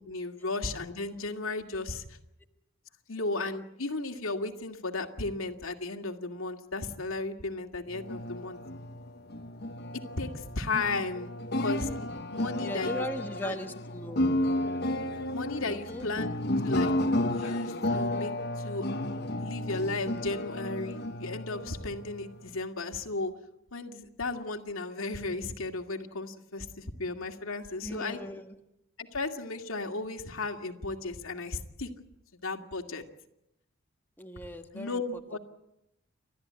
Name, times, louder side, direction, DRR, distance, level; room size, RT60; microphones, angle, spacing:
voice 1, 0.0-2.2 3.1-8.6 9.9-11.3 11.6-13.0 13.4-13.6 15.3-16.9 17.3-18.9 19.4-23.3 23.7-28.2 29.0-31.9 32.3-33.0 34.7-35.4, left 3 dB, 85° left, 4 dB, 2.3 m, -35 dB
sound 1, 7.9-22.6, left 1 dB, 50° left, 1.2 m, -32 dB
voice 2, 12.6-14.4 15.6-16.1 27.8-28.6 34.2-35.0 35.3-35.4, left 1 dB, 10° left, 4 dB, 1.4 m, -38 dB
30.0 x 13.5 x 9.7 m, 0.82 s
head